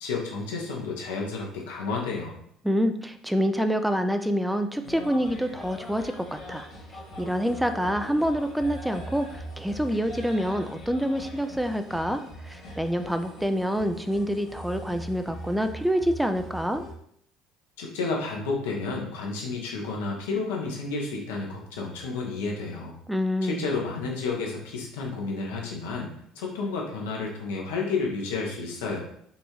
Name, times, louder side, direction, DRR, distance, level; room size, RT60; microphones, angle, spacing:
voice 1, 0.0-2.4 17.8-23.0 23.4-29.0, left 4 dB, 75° left, -1 dB, 0.9 m, -31 dB
voice 2, 2.6-6.7 7.2-16.8 23.1-23.6, equal, 5° right, 8 dB, 0.3 m, -27 dB
sound 1, 4.8-16.9, equal, 50° left, 1.5 m, -41 dB
5.4 x 2.6 x 3.0 m, 0.69 s
hypercardioid pair, 60°, 0 cm